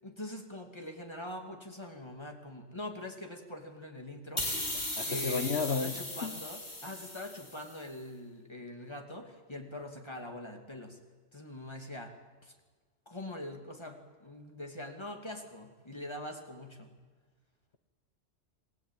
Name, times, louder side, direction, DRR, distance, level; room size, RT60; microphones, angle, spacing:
voice 1, 0.0-4.8 5.0-11.0 11.3-12.2 12.4-12.5 13.1-16.9, left 1 dB, 25° left, 2.9 m, -43 dB
sound 1, 4.4-7.8, left 1 dB, 40° left, 3.2 m, -37 dB
voice 2, 5.0-5.9 6.2-6.4, left 5 dB, 65° left, 1.4 m, -32 dB
27.0 x 18.5 x 9.2 m
omnidirectional pair, 1.2 m